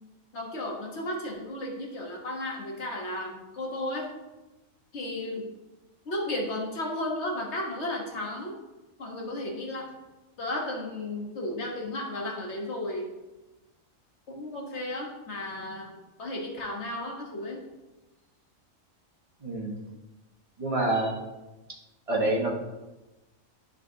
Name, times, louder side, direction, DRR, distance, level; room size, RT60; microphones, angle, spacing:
voice 1, 0.3-4.1 4.9-5.5 6.0-8.5 9.0-9.9 10.4-13.1 14.3-17.6, left 1 dB, 60° left, -1 dB, 1.4 m, -34 dB
voice 2, 19.4-19.7 20.6-21.2 21.7-21.8 22.1-22.5, right 2 dB, 30° right, -1 dB, 1.1 m, -27 dB
11.0 x 4.1 x 2.7 m, 1.1 s
omnidirectional pair, 1.4 m